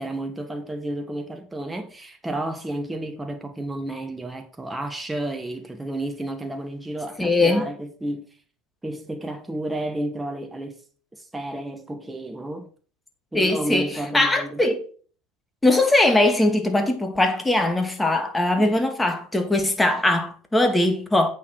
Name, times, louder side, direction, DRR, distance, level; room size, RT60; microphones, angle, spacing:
voice 1, 0.0-8.3 8.8-10.8 11.1-12.7 13.3-14.6 18.6-18.8, right 1 dB, 10° right, 1.4 m, -31 dB
voice 2, 7.2-7.7 13.3-14.8 15.6-21.3, left 2 dB, 10° left, 2.1 m, -21 dB
8.4 x 6.4 x 4.8 m
hypercardioid pair, 70°, 0 cm